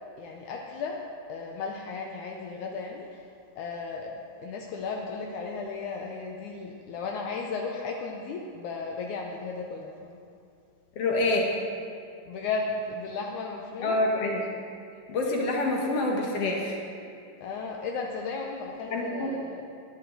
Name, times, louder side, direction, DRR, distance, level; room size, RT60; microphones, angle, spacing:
voice 1, 0.2-1.0 1.3-3.2 3.6-4.1 4.4-10.1 12.3-14.0 17.4-19.6, left 4 dB, 75° left, 1 dB, 1.9 m, -35 dB
voice 2, 11.0-11.6 13.8-14.5 15.1-16.8 18.9-19.4, left 2 dB, 60° left, -1 dB, 1.8 m, -27 dB
12.5 x 10.0 x 3.9 m, 2.4 s
omnidirectional pair, 3.9 m